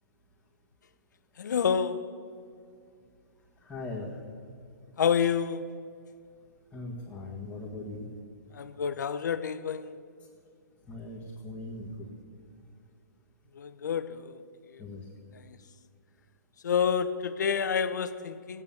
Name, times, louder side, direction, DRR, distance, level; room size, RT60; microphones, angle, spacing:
voice 1, 1.4-2.1 5.0-5.8 8.5-9.9 13.5-14.4 14.7-14.8 15.3-15.6 16.6-18.6, left 7 dB, 80° left, 12 dB, 0.9 m, -29 dB
voice 2, 3.6-4.2 6.7-8.1 10.9-12.1 14.8-15.1, left 2 dB, 10° left, -8 dB, 1.9 m, -39 dB
15.5 x 9.6 x 7.2 m, 2.3 s
hypercardioid pair, 155°, 10 cm